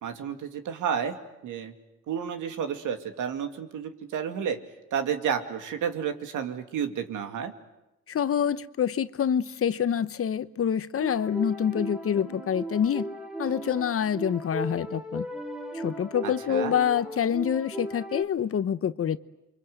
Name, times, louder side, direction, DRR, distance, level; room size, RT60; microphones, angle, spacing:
voice 1, 0.0-1.2 1.4-1.7 2.1-4.6 4.9-7.5 16.2-16.7, right 7 dB, 80° right, 2.4 m, -31 dB
voice 2, 8.1-13.1 13.4-15.3 15.7-19.2, left 8 dB, 50° left, 1.0 m, -26 dB
sound 1, 11.0-18.2, right 1 dB, ahead, 3.2 m, -37 dB
29.0 x 24.0 x 8.0 m
cardioid pair, 90°, 30 cm